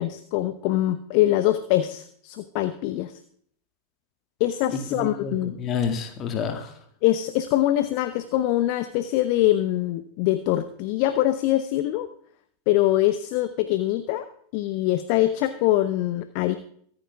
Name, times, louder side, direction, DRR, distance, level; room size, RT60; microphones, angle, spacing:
voice 1, 0.0-3.2 4.4-5.6 7.0-12.1 12.7-14.3 14.5-16.6, left 14 dB, 45° left, 12 dB, 0.8 m, -23 dB
voice 2, 4.7-6.7, left 6 dB, 30° left, 6 dB, 2.3 m, -29 dB
24.0 x 9.0 x 3.5 m, 0.62 s
figure-of-eight pair, 90°, 0 cm